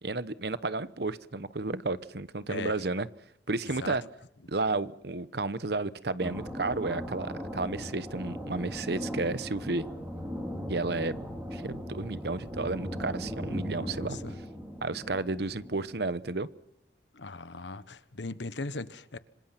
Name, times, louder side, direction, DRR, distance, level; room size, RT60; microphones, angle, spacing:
voice 1, 0.0-3.1 3.5-4.0 4.5-9.9 10.7-11.2 11.5-14.2 14.8-16.5, right 3 dB, 65° right, 15 dB, 1.0 m, -32 dB
sound 1, 6.2-16.0, equal, 10° right, 4.8 m, -38 dB
voice 2, 13.8-14.3 17.1-19.2, left 3 dB, 85° left, 14 dB, 1.3 m, -38 dB
26.0 x 26.0 x 5.9 m, 0.81 s
head